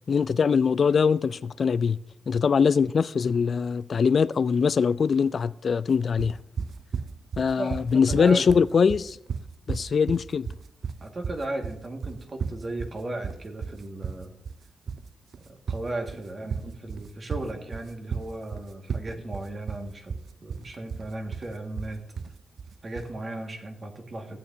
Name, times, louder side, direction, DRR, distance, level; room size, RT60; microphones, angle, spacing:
voice 1, 0.1-2.0 2.3-6.4 7.4-9.2 9.7-10.5, left 6 dB, 55° left, 0.4 m, -22 dB
sound 1, 6.2-23.2, right 6 dB, 65° right, 0.4 m, -34 dB
voice 2, 7.6-8.7 11.0-14.4 15.5-20.2 20.4-22.0 22.8-24.4, right 2 dB, 40° right, 1.8 m, -36 dB
15.5 x 8.8 x 2.8 m
cardioid pair, 80°, 0 cm